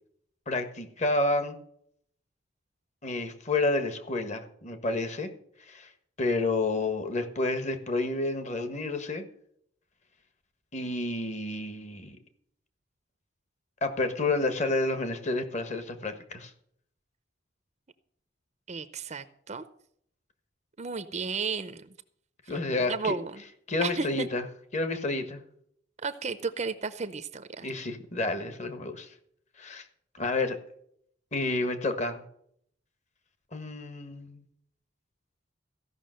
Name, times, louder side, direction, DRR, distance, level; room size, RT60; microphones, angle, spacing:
voice 1, 0.5-1.6 3.0-5.3 5.7-5.9 6.2-9.2 10.7-12.2 13.8-16.5 22.5-23.2 23.7-24.4 24.7-25.4 27.6-29.1 29.6-29.8 30.2-30.6 31.3-32.2 33.5-34.4, left 2 dB, 35° left, 8 dB, 1.4 m, -30 dB
voice 2, 18.7-19.6 20.8-21.9 22.5-23.4 23.8-24.3 26.0-27.7, right 5 dB, 35° right, 12 dB, 0.6 m, -33 dB
15.5 x 5.9 x 7.7 m, 0.67 s
head